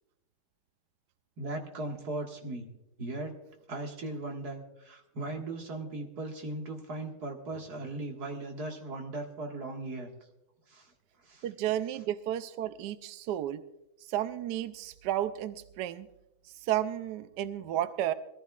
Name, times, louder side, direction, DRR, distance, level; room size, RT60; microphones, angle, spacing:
voice 1, 1.4-2.7 3.0-3.4 3.7-10.1 10.7-10.9 11.2-11.4, right 2 dB, 45° right, 1 dB, 2.2 m, -38 dB
voice 2, 11.4-13.6 14.1-16.1 16.6-18.1, right 12 dB, 80° right, 11 dB, 0.9 m, -32 dB
21.5 x 14.5 x 2.4 m, 0.90 s
omnidirectional pair, 2.4 m